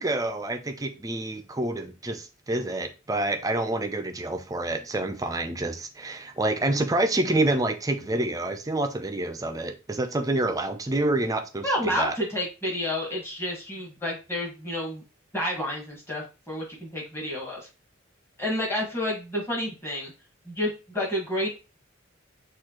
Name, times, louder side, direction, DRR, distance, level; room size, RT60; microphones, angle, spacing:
voice 1, 0.0-12.2, right 2 dB, 15° right, 0.4 m, -27 dB
voice 2, 11.6-15.0 15.3-17.7 18.4-20.1 20.4-21.5, left 1 dB, 10° left, 1.6 m, -30 dB
6.4 x 2.4 x 3.0 m
head